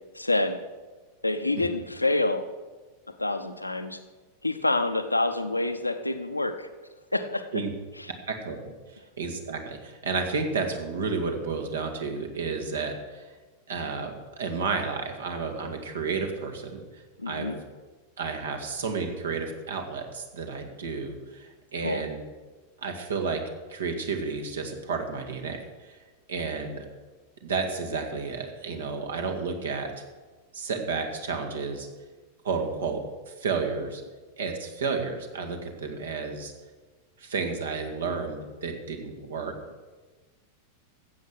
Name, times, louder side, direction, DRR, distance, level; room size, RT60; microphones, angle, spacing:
voice 1, 0.1-0.6 1.2-2.4 3.2-4.0 4.4-6.7 7.1-7.5 17.2-17.6 21.8-22.0, left 2 dB, 85° left, 8 dB, 0.9 m, -27 dB
voice 2, 9.2-13.3 13.7-17.6 18.2-22.2 22.8-23.4 23.7-26.0 26.3-26.8 27.4-29.9 30.5-31.9 32.4-34.0 34.4-36.5 37.2-39.5, right 4 dB, 65° right, 4 dB, 2.0 m, -31 dB
14.5 x 8.2 x 6.3 m, 1.3 s
figure-of-eight pair, 90°, 0 cm